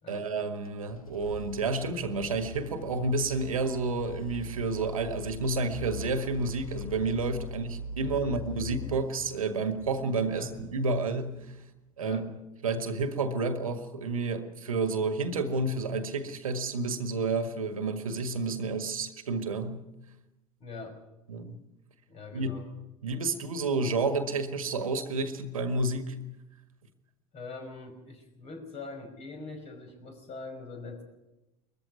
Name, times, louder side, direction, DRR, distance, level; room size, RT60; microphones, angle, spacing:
voice 1, 0.1-11.4 12.0-12.3 12.6-19.8 21.3-21.6 22.3-22.6 23.0-26.2, right 3 dB, 75° right, 10 dB, 1.7 m, -30 dB
sound 1, 0.6-11.4, left 3 dB, 80° left, 0.9 m, -42 dB
voice 2, 8.0-8.4 10.3-10.5 12.0-12.3 20.6-21.0 22.1-22.7 27.3-31.0, left 3 dB, 35° left, 4 dB, 5.4 m, -43 dB
21.5 x 14.5 x 9.3 m, 0.98 s
figure-of-eight pair, 75°, 18 cm